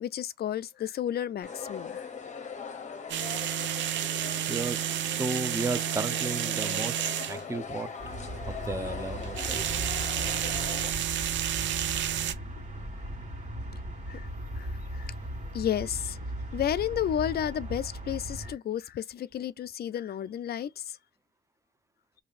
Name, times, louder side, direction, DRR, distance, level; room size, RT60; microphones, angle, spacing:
voice 1, 0.0-2.1 10.2-10.6 14.1-14.3 14.6-15.1 15.5-16.2 16.5-21.0, left 10 dB, 60° left, 0.4 m, -32 dB
sound 1, 1.4-10.9, left 5 dB, 40° left, 0.8 m, -40 dB
sound 2, 3.1-7.4 9.2-12.3, right 11 dB, 85° right, 0.5 m, -30 dB
voice 2, 3.9-4.8 5.1-7.0 7.3-7.9 8.5-9.8, right 3 dB, 15° right, 0.6 m, -34 dB
sound 3, 8.0-18.5, equal, 40° right, 1.9 m, -38 dB
5.0 x 2.7 x 2.4 m
cardioid pair, 85°, 19 cm